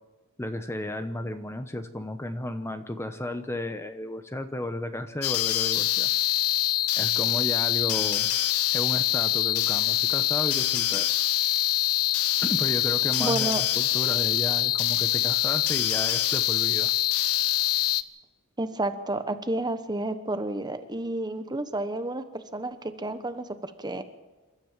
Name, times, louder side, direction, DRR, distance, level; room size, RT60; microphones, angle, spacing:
voice 1, 0.4-6.1 7.0-8.3 8.7-11.1 12.4-16.9, left 1 dB, 10° left, 9 dB, 1.0 m, -33 dB
sound 1, 5.2-18.0, left 13 dB, 80° left, 0.8 m, -25 dB
voice 2, 13.2-13.6 18.6-24.0, right 2 dB, 20° right, 10 dB, 1.1 m, -31 dB
28.0 x 13.0 x 7.5 m, 1.2 s
head